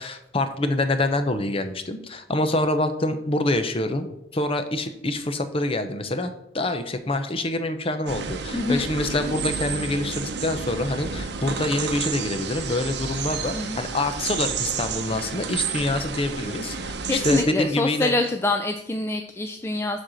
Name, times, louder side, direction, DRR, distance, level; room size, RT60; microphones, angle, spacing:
voice 1, 0.0-4.1 4.3-18.1, left 2 dB, 30° left, 9 dB, 0.7 m, -26 dB
sound 1, 8.1-17.4, right 5 dB, 65° right, 0.7 m, -31 dB
voice 2, 8.5-8.9 13.5-13.8 17.1-20.0, left 2 dB, 15° left, 5 dB, 0.4 m, -25 dB
7.6 x 4.3 x 6.3 m, 0.81 s
head